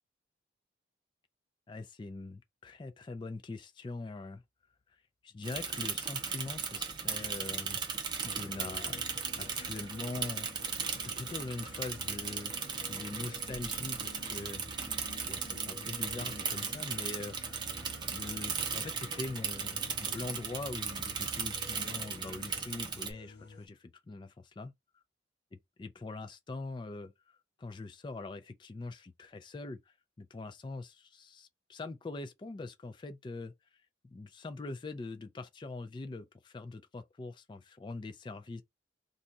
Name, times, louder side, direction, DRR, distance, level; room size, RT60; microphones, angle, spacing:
voice 1, 1.7-4.4 5.2-7.8 8.2-9.1 9.3-12.5 12.9-14.6 15.3-17.4 18.1-24.7 25.8-33.5 34.0-38.6, left 3 dB, 25° left, 0.3 m, -43 dB
Bicycle / Mechanisms, 5.4-23.1, right 6 dB, 25° right, 0.6 m, -37 dB
sound 1, 8.2-23.7, left 1 dB, 70° left, 0.8 m, -51 dB
2.6 x 2.3 x 3.9 m
head